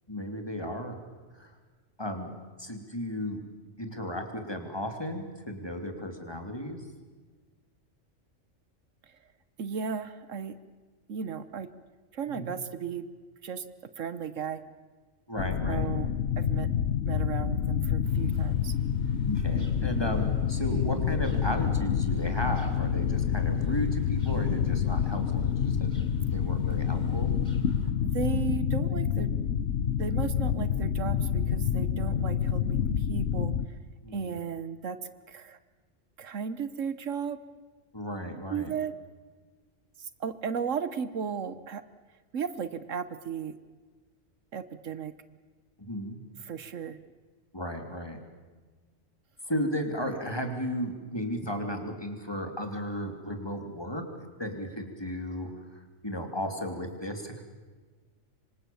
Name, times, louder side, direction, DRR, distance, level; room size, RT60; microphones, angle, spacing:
voice 1, 0.1-0.9 1.3-1.5 2.0-3.4 3.8-6.8 12.3-12.5 15.3-15.9 19.3-26.0 26.3-27.3 34.0-34.4 37.9-38.7 45.8-46.2 47.5-48.2 49.4-54.0 54.4-55.5 56.0-57.4, equal, 20° left, 4 dB, 3.0 m, -34 dB
voice 2, 9.6-10.6 11.1-11.7 12.1-13.0 13.4-13.6 14.0-14.6 15.4-16.1 16.4-16.7 17.1-18.7 28.0-29.3 30.0-33.8 34.1-35.0 35.3-35.6 36.2-37.4 38.5-39.0 40.0-41.8 42.3-43.6 44.5-45.1 46.4-47.0, right 7 dB, 70° right, 13 dB, 1.3 m, -35 dB
sound 1, 15.4-33.7, left 8 dB, 65° left, 1.2 m, -28 dB
sound 2, 18.0-27.9, equal, 35° right, 3.1 m, -51 dB
27.0 x 24.5 x 7.1 m, 1.4 s
omnidirectional pair, 1.4 m